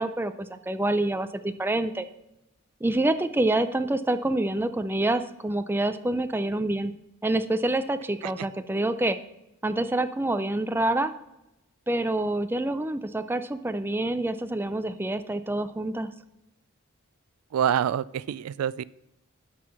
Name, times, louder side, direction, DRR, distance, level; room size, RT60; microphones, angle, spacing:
voice 1, 0.0-2.0 2.8-6.9 7.2-9.2 9.6-11.1 11.9-16.1, right 1 dB, 10° right, 10 dB, 0.4 m, -27 dB
voice 2, 17.5-18.8, right 9 dB, 85° right, 20 dB, 0.3 m, -26 dB
12.5 x 4.6 x 5.7 m, 0.90 s
head